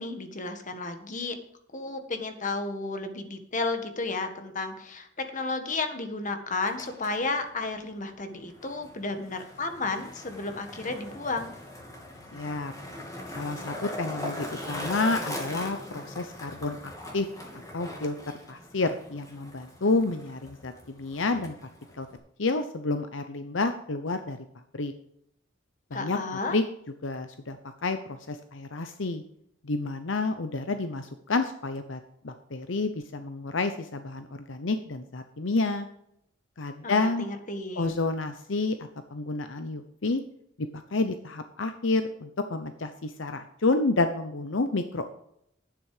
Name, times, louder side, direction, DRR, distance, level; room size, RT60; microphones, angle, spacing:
voice 1, 0.0-1.4 1.7-11.5 25.9-26.6 36.8-37.9, left 3 dB, 40° left, 7 dB, 1.6 m, -33 dB
Skateboard, 6.5-22.2, left 1 dB, 20° left, 2.8 m, -41 dB
voice 2, 12.3-12.7 13.3-16.8 17.1-17.3 17.7-18.2 18.5-21.6 22.0-22.1 22.4-24.4 24.7-24.9 25.9-26.2 26.5-26.6 27.0-27.6 27.8-29.2 29.6-35.9 36.6-37.3 37.8-38.8 39.1-40.2 40.6-45.1, left 3 dB, 70° left, 8 dB, 0.8 m, -29 dB
11.5 x 9.3 x 5.0 m, 0.74 s
head